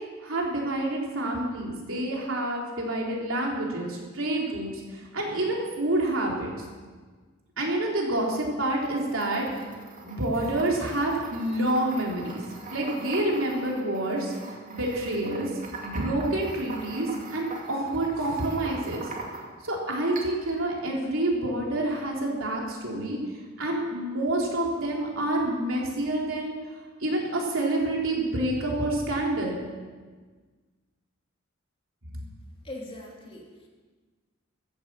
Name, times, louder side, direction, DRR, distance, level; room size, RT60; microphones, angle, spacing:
voice 1, 0.2-6.5 7.6-9.7 10.0-12.4 12.7-14.3 14.7-15.5 15.8-19.1 19.6-23.2 23.6-26.6 27.0-29.6 32.1-32.2, right 1 dB, 90° right, -2 dB, 3.6 m, -28 dB
sound 1, 8.7-19.7 20.2-20.6, right 2 dB, 40° right, 2.4 m, -42 dB
voice 2, 32.6-33.7, left 1 dB, 30° left, -1 dB, 2.9 m, -41 dB
15.0 x 10.5 x 7.6 m, 1.4 s
head